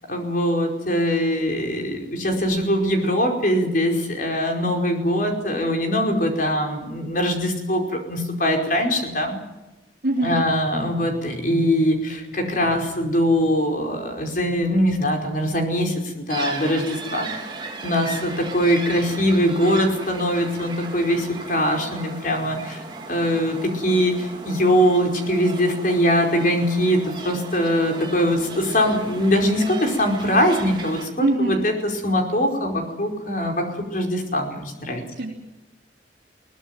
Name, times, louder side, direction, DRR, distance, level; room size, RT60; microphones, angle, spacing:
voice 1, 0.1-9.4 10.2-17.3 17.8-22.8 23.1-31.7 32.0-35.0, equal, 45° left, 3 dB, 5.0 m, -22 dB
voice 2, 10.0-10.4 31.2-31.6 35.1-35.3, right 2 dB, 60° right, -4 dB, 3.9 m, -22 dB
sound 1, 16.3-31.1, right 3 dB, 25° right, 2.9 m, -36 dB
22.0 x 19.0 x 9.1 m, 1.0 s
head